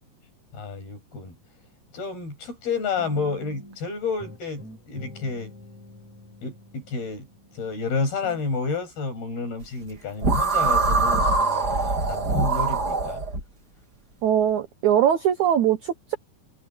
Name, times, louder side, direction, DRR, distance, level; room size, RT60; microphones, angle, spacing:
voice 1, 0.5-1.4 1.9-5.5 6.4-7.3 7.5-13.2, left 4 dB, 60° left, 9.5 m, -30 dB
sound 1, 3.0-3.9 4.2-7.8 8.2-8.5, left 1 dB, 40° left, 5.9 m, -45 dB
sound 2, 10.2-13.4, right 3 dB, 25° right, 3.1 m, -23 dB
voice 2, 14.2-16.2, right 10 dB, 80° right, 1.7 m, -21 dB
omnidirectional pair, 4.9 m